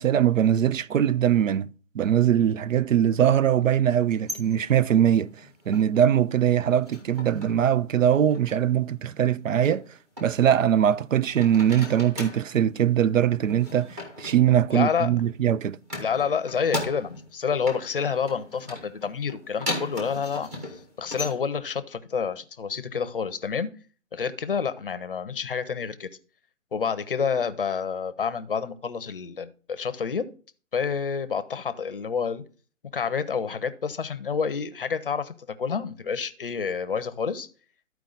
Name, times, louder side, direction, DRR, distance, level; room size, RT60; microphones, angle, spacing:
voice 1, 0.0-1.7 1.9-5.3 5.7-9.8 10.2-15.8, right 10 dB, 70° right, 0.5 m, -21 dB
sound 1, 4.0-6.2 6.5-7.7 8.0-8.6 9.6-11.0 11.3-12.5 13.4-15.4 15.8-17.3 17.6-21.3, left 1 dB, 10° right, 0.9 m, -38 dB
voice 2, 14.7-15.1 16.0-23.7 24.1-26.1 26.7-30.3 30.7-32.4 32.9-37.5, left 6 dB, 40° left, 0.6 m, -28 dB
13.0 x 4.7 x 3.9 m
hypercardioid pair, 160°, 41 cm